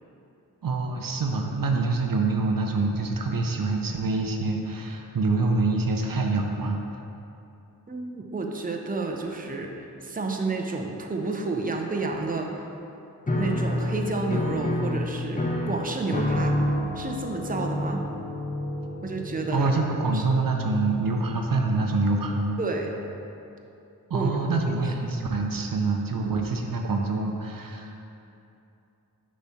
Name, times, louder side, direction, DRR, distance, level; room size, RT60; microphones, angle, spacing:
voice 1, 0.6-6.8 19.5-22.6 24.1-28.0, right 3 dB, 65° right, 2 dB, 0.7 m, -26 dB
voice 2, 7.9-12.7 13.4-16.6 17.0-18.0 19.0-19.7 20.1-20.2 22.6-22.9 24.1-24.8, right 3 dB, 25° right, 2 dB, 0.7 m, -30 dB
Piano, 13.3-20.0, left 1 dB, 20° left, 0.7 m, -28 dB
6.7 x 3.2 x 5.7 m, 2.8 s
cardioid pair, 45°, 36 cm